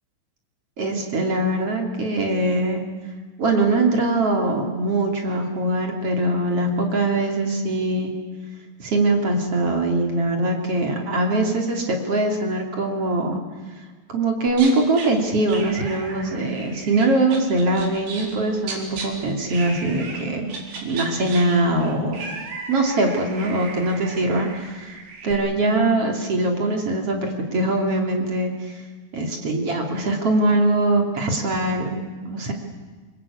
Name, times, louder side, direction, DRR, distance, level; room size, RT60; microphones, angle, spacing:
voice 1, 0.8-2.8 3.4-8.1 8.8-13.4 14.1-20.5 20.8-22.2 22.7-24.9 25.2-28.5 29.1-32.5, right 2 dB, 35° right, 2 dB, 3.4 m, -22 dB
sound 1, 14.5-15.1 15.5-18.4 18.6-19.1 19.5-20.2 20.5-25.3, right 4 dB, 65° right, 6.2 m, -36 dB
27.5 x 22.0 x 8.5 m, 1.4 s
omnidirectional pair, 5.3 m